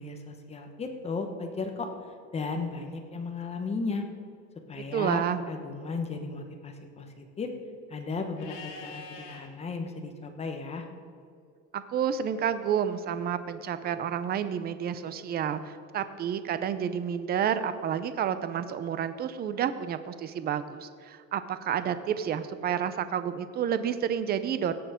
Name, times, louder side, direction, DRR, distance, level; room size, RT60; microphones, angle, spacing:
voice 1, 0.0-4.0 4.7-7.5 7.9-10.8, left 4 dB, 20° left, 5 dB, 1.1 m, -35 dB
voice 2, 4.9-5.4 11.7-24.7, right 8 dB, 30° right, 12 dB, 0.6 m, -30 dB
Livestock farm animals working animals, 8.4-9.4 12.2-13.2, left 4 dB, 75° left, 3.0 m, -46 dB
17.5 x 7.0 x 5.1 m, 2.4 s
cardioid pair, 165°, 32 cm